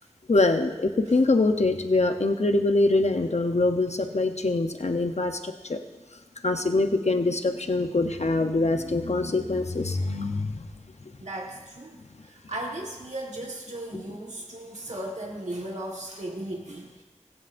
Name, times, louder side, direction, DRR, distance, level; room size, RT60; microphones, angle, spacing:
voice 1, 0.3-5.8 6.4-10.7, left 2 dB, 70° left, 6 dB, 0.8 m, -24 dB
voice 2, 11.2-12.0 12.2-17.0, right 1 dB, 75° right, -2 dB, 1.5 m, -36 dB
18.0 x 16.5 x 2.6 m, 1.3 s
wide cardioid pair, 50°, 12 cm